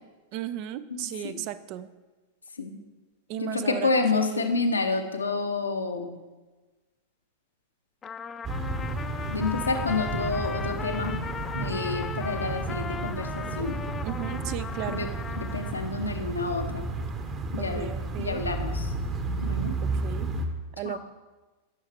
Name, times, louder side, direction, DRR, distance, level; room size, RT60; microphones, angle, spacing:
voice 1, 0.3-1.9 3.3-4.5 14.0-15.1 17.6-18.4 19.8-20.3 20.8-21.0, right 12 dB, 45° right, 14 dB, 0.4 m, -35 dB
voice 2, 0.9-1.4 2.6-2.8 3.4-6.1 9.3-11.2 11.5-13.8 14.9-15.1 15.4-16.9 17.5-17.9 18.2-18.9 19.4-19.8 20.8-21.0, left 3 dB, 75° left, 5 dB, 0.9 m, -29 dB
Trumpet, 8.0-15.9, left 6 dB, 20° left, 0.5 m, -38 dB
sound 1, 8.4-20.5, right 3 dB, 25° right, 1.0 m, -32 dB
15.5 x 6.4 x 3.4 m, 1.2 s
figure-of-eight pair, 90°, 0 cm